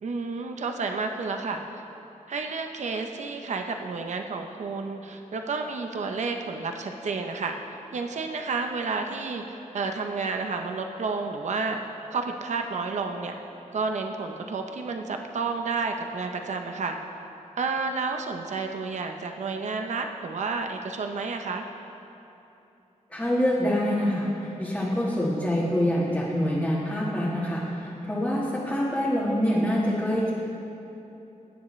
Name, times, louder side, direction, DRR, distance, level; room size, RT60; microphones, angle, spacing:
voice 1, 0.0-1.8 2.3-11.8 12.1-13.4 13.7-17.0 17.6-21.7, right 4 dB, 65° right, 4 dB, 0.7 m, -31 dB
voice 2, 23.1-30.3, equal, 10° left, -7 dB, 1.5 m, -25 dB
21.0 x 9.8 x 3.2 m, 2.9 s
wide cardioid pair, 175°, 13 cm